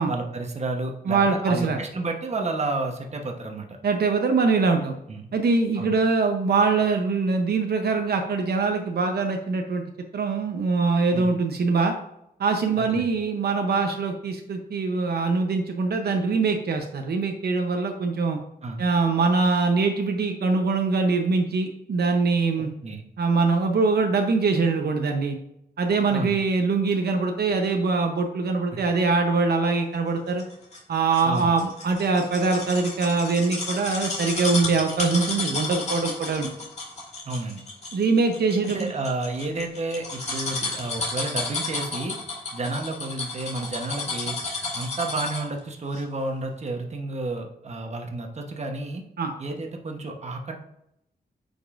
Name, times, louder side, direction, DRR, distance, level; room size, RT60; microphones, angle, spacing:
voice 1, 0.1-3.7 5.1-5.3 5.8-5.9 11.1-11.3 12.8-13.1 18.6-18.8 22.6-23.1 26.1-26.4 31.2-31.5 37.2-37.6 38.7-42.2 42.5-44.4 44.7-49.0 49.4-50.6, right 2 dB, 40° right, 3 dB, 1.0 m, -31 dB
voice 2, 1.1-1.8 3.8-4.9 5.3-9.8 10.1-11.9 12.4-18.4 18.8-22.7 23.2-25.4 25.8-30.4 30.9-36.5 37.9-38.9 49.2-49.3, right 4 dB, 75° right, 4 dB, 0.8 m, -23 dB
sound 1, 30.4-45.6 45.9-46.0, left 3 dB, 40° left, 1.9 m, -32 dB
8.8 x 5.3 x 2.5 m, 0.79 s
wide cardioid pair, 135°, 17 cm